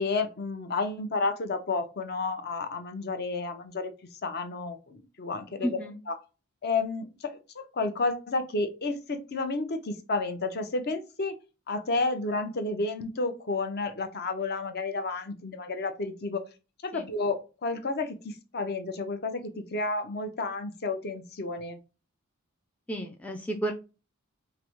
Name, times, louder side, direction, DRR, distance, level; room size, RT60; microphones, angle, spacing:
voice 1, 0.0-3.9 4.2-5.7 6.1-6.2 6.6-7.3 7.7-11.3 11.7-16.4 16.8-19.4 19.7-21.8, left 3 dB, 45° left, 7 dB, 0.6 m, -31 dB
voice 2, 5.6-6.0 16.9-17.1 22.9-23.7, right 1 dB, 5° left, 1 dB, 0.3 m, -32 dB
4.8 x 2.1 x 2.9 m, 0.31 s
head